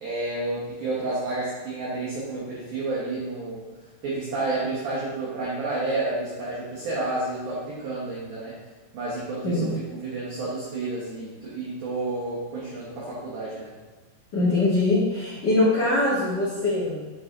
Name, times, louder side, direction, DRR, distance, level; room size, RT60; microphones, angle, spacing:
voice 1, 0.0-3.7 4.0-8.6 8.9-13.7, right 2 dB, 70° right, -8 dB, 2.2 m, -30 dB
voice 2, 14.3-17.1, left 2 dB, 80° left, -10 dB, 1.3 m, -23 dB
10.0 x 4.2 x 2.6 m, 1.3 s
omnidirectional pair, 5.9 m